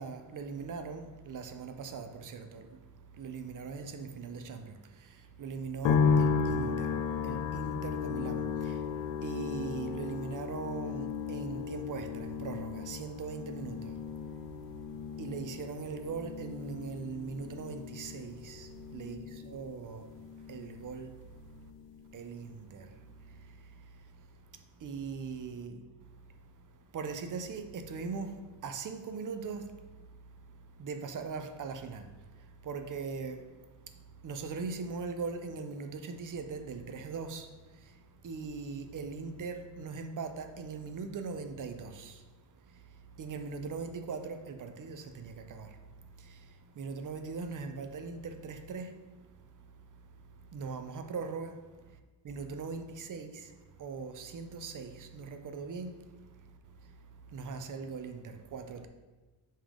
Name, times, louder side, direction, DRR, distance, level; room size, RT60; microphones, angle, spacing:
voice 1, 0.0-2.7 3.2-4.7 5.4-7.0 7.2-8.8 9.2-13.9 15.2-20.0 20.5-21.1 22.1-22.9 24.8-25.8 26.9-29.7 30.8-32.1 32.6-33.4 34.2-37.5 38.2-42.2 43.2-45.7 46.8-48.9 50.5-51.5 52.3-53.5 53.8-56.0 57.3-58.9, right 5 dB, 45° right, 0.5 m, -40 dB
sound 1, 5.8-21.1 21.4-22.2, left 5 dB, 65° left, 0.5 m, -34 dB
5.3 x 3.7 x 5.0 m
wide cardioid pair, 175°, 47 cm